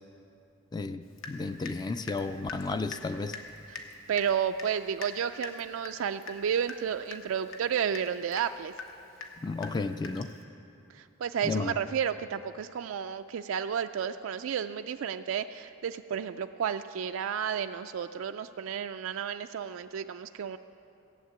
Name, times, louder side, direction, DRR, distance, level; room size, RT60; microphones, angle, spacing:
voice 1, 0.7-3.4 9.4-10.3 11.4-11.8, left 3 dB, 20° left, 10 dB, 0.3 m, -33 dB
Water tap faucet / Drip, 1.2-10.4, left 4 dB, 75° left, 1.2 m, -44 dB
voice 2, 4.1-8.7 10.9-20.6, right 8 dB, 75° right, 8 dB, 0.4 m, -32 dB
16.0 x 7.4 x 9.0 m, 2.7 s
head